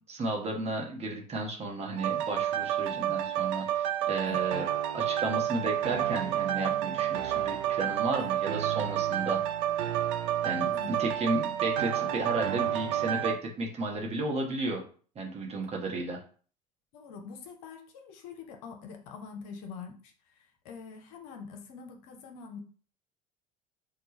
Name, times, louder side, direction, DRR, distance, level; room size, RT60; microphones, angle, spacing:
voice 1, 0.1-4.6 4.9-9.4 10.4-14.8 15.1-16.2, right 2 dB, 30° right, 1.0 m, -33 dB
sound 1, 2.0-13.4, right 11 dB, 55° right, 0.5 m, -30 dB
voice 2, 2.9-3.2 4.2-4.5 8.2-8.3 10.7-11.0 16.9-22.6, left 6 dB, 55° left, 0.7 m, -45 dB
3.3 x 2.3 x 3.0 m
figure-of-eight pair, 65°, 21 cm